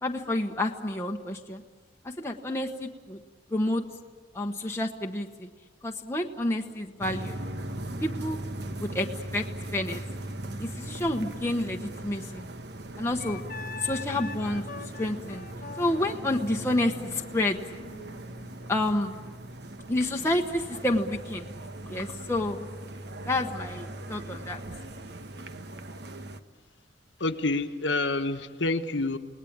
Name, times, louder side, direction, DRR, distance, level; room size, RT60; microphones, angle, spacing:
voice 1, 0.0-1.6 2.0-3.2 3.5-3.8 4.3-5.5 5.8-7.4 8.0-8.4 8.8-9.1 9.3-9.4 9.7-10.0 10.6-12.5 13.0-13.4 13.8-15.5 15.8-17.6 18.7-19.1 19.9-21.5 21.9-22.6 23.3-24.6, left 1 dB, 15° left, 1 dB, 1.1 m, -29 dB
sound 1, 7.0-26.4, right 1 dB, 65° right, 1.2 m, -39 dB
Wind instrument woodwind instrument, 13.2-18.6, left 4 dB, 50° left, 1.2 m, -43 dB
voice 2, 27.2-29.2, left 2 dB, 85° left, 8 dB, 1.4 m, -28 dB
29.0 x 19.5 x 8.8 m, 1.5 s
head